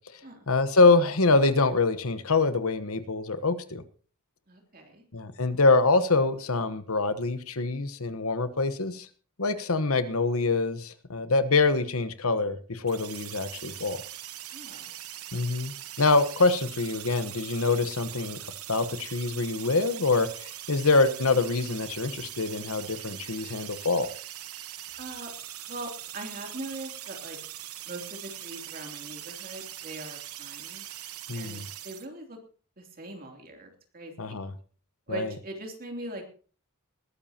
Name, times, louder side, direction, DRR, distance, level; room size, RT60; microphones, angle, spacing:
voice 1, 0.5-3.8 5.1-9.1 9.4-14.0 15.3-18.4 18.7-24.1 31.3-31.6 34.2-34.5 35.1-35.3, left 3 dB, 70° left, 11 dB, 1.2 m, -25 dB
voice 2, 4.5-5.0 14.5-14.9 25.0-25.3 25.7-27.4 27.8-30.8 31.3-32.4 32.8-34.4 35.1-36.2, right 1 dB, 40° right, 3 dB, 3.1 m, -41 dB
sound 1, 12.9-32.1, right 12 dB, 75° right, 1.0 m, -41 dB
20.0 x 12.5 x 2.9 m, 0.40 s
head